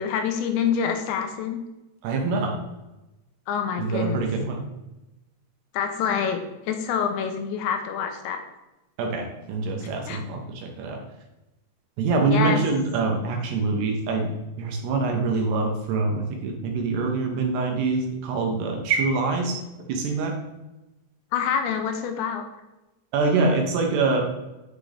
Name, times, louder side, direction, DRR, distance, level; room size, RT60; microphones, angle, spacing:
voice 1, 0.0-1.6 3.5-4.2 5.7-8.4 9.8-10.2 12.3-12.6 21.3-22.4, left 7 dB, 80° left, 5 dB, 2.9 m, -26 dB
voice 2, 2.0-2.6 3.8-4.6 9.0-11.0 12.0-19.6 19.9-20.3 23.1-24.2, right 3 dB, 70° right, 1 dB, 2.8 m, -25 dB
10.0 x 6.0 x 3.4 m, 1.0 s
omnidirectional pair, 5.4 m